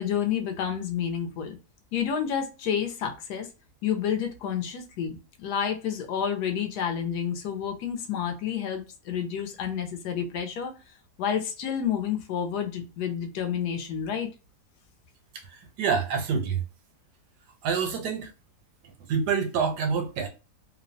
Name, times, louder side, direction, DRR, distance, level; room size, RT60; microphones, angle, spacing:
voice 1, 0.0-1.6 1.9-3.5 3.8-10.7 11.2-14.3, left 8 dB, 75° left, 1.1 m, -29 dB
voice 2, 15.4-16.6 17.6-18.3 19.1-20.3, right 6 dB, 85° right, 1.2 m, -27 dB
3.0 x 2.0 x 2.5 m
omnidirectional pair, 1.8 m